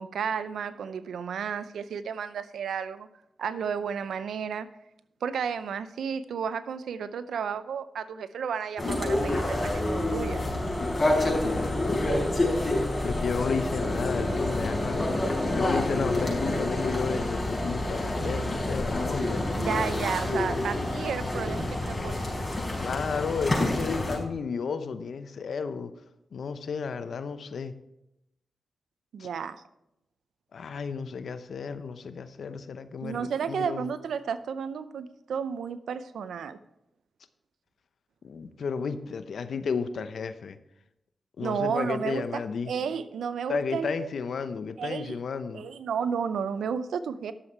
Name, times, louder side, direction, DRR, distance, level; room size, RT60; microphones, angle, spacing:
voice 1, 0.0-3.1 3.4-4.7 5.2-10.4 19.6-22.3 29.1-29.6 33.0-36.6 41.4-44.1 44.8-45.2 45.5-47.3, right 7 dB, 90° right, 13 dB, 0.5 m, -32 dB
sound 1, 8.8-24.2, left 1 dB, 25° left, 4.5 m, -28 dB
voice 2, 11.0-12.5 13.0-15.1 15.5-19.4 22.8-25.9 26.3-27.7 29.2-29.3 30.5-33.9 38.2-40.6 41.4-42.7 43.5-45.7, left 5 dB, 75° left, 11 dB, 0.7 m, -33 dB
11.5 x 7.3 x 4.5 m, 0.85 s
cardioid pair, 55°, 0 cm